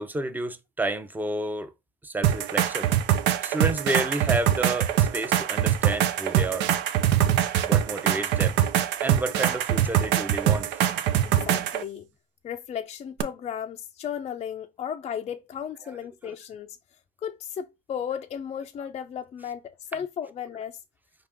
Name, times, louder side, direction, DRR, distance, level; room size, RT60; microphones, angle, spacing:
voice 1, 0.0-1.7 2.0-2.9 3.4-6.7 7.6-8.6 9.0-10.8, right 2 dB, 10° right, 0.6 m, -30 dB
sound 1, 2.2-11.8 13.2-13.3, right 11 dB, 90° right, 0.5 m, -23 dB
voice 2, 11.2-12.1 12.4-16.8 17.2-20.8, left 8 dB, 40° left, 0.4 m, -35 dB
5.1 x 2.9 x 3.5 m
cardioid pair, 110°, 17 cm